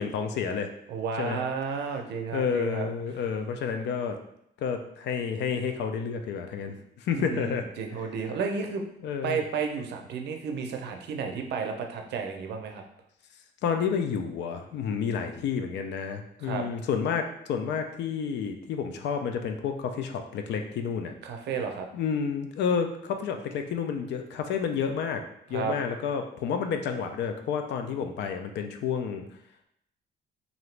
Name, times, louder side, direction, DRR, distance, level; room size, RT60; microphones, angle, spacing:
voice 1, 0.0-0.7 1.2-1.4 2.3-4.2 4.6-7.7 9.0-9.4 13.6-21.1 21.9-25.2 25.5-29.3, left 6 dB, 80° left, 6 dB, 0.4 m, -30 dB
voice 2, 0.9-2.9 7.1-8.8 9.2-12.8 16.4-16.6 21.2-21.9 25.5-25.7, right 5 dB, 75° right, 4 dB, 0.5 m, -32 dB
2.8 x 2.6 x 3.2 m, 0.75 s
cardioid pair, 160°, 18 cm